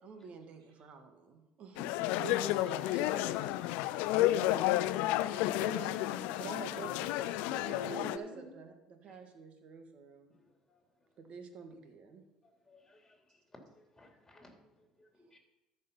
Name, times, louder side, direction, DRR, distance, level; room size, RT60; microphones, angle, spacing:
voice 1, 0.0-2.1 2.9-3.1 6.4-10.4 11.2-12.2, right 5 dB, 55° right, 6 dB, 1.8 m, -49 dB
sound 1, 1.8-8.2, left 14 dB, 70° left, 0.4 m, -31 dB
voice 2, 2.2-3.3 5.6-7.1 7.5-8.5, right 1 dB, 90° right, 1 dB, 2.0 m, -45 dB
voice 3, 12.7-13.1 14.0-14.5 15.0-15.4, left 2 dB, 15° left, 1 dB, 3.2 m, -61 dB
13.0 x 5.4 x 5.6 m, 0.98 s
hypercardioid pair, 65°, 3 cm